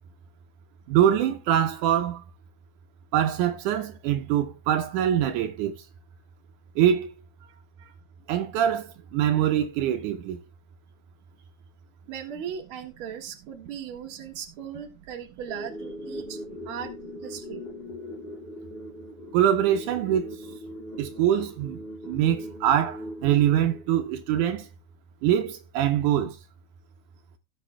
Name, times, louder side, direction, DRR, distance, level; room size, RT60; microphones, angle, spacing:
voice 1, 0.9-2.2 3.1-5.7 6.8-7.1 8.3-8.8 9.1-10.4 19.3-20.4 21.0-21.8 22.1-24.7 25.2-26.4, right 10 dB, 80° right, 2.3 m, -23 dB
voice 2, 7.4-7.9 12.1-16.4 16.7-16.9 17.2-17.6, right 9 dB, 50° right, 2.2 m, -38 dB
sound 1, 15.5-24.5, equal, 20° left, 1.9 m, -40 dB
17.0 x 6.7 x 2.2 m
omnidirectional pair, 3.6 m